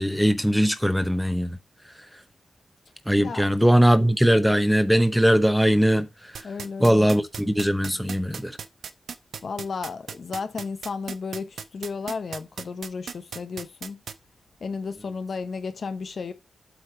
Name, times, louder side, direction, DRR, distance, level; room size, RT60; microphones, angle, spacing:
voice 1, 0.0-1.6 3.1-6.1 6.8-8.6, equal, ahead, 0.9 m, -20 dB
sound 1, 6.3-14.1, right 7 dB, 85° right, 0.6 m, -36 dB
voice 2, 6.4-7.1 9.4-14.0 14.6-16.3, left 5 dB, 65° left, 0.9 m, -33 dB
8.1 x 3.2 x 5.9 m
cardioid pair, 80°, 0 cm